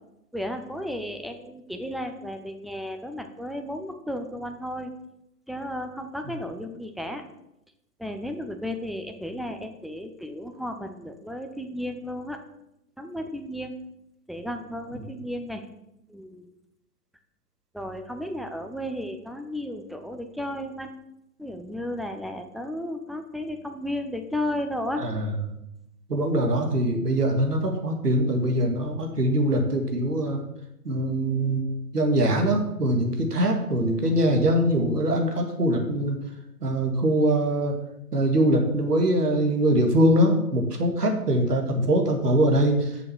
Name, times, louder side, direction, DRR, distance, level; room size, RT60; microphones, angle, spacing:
voice 1, 0.3-4.9 5.5-7.2 8.0-12.4 13.0-13.7 14.3-15.7 16.1-16.5 17.7-20.9 21.4-25.1, left 1 dB, ahead, 6 dB, 0.3 m, -33 dB
voice 2, 25.0-25.3 26.1-30.4 30.8-31.6 31.9-36.2 36.6-37.7 38.1-42.9, right 1 dB, 75° right, 3 dB, 2.4 m, -23 dB
6.8 x 6.6 x 6.2 m, 0.85 s
hypercardioid pair, 170°, 47 cm